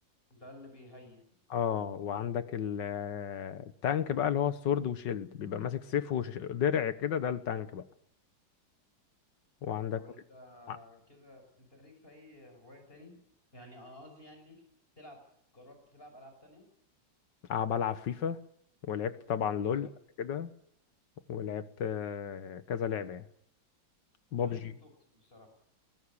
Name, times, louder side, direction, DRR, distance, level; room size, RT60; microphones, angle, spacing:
voice 1, 0.3-1.2 9.9-13.2 13.5-14.6 15.0-15.2 15.5-16.7 19.7-19.9 24.4-25.5, left 1 dB, 30° left, 5 dB, 6.0 m, -53 dB
voice 2, 1.5-7.8 9.6-10.0 10.7-10.8 17.5-18.4 18.8-19.9 20.2-20.5 21.3-23.2 24.3-24.7, left 8 dB, 70° left, 13 dB, 1.8 m, -32 dB
21.0 x 17.0 x 9.9 m, 0.71 s
omnidirectional pair, 2.1 m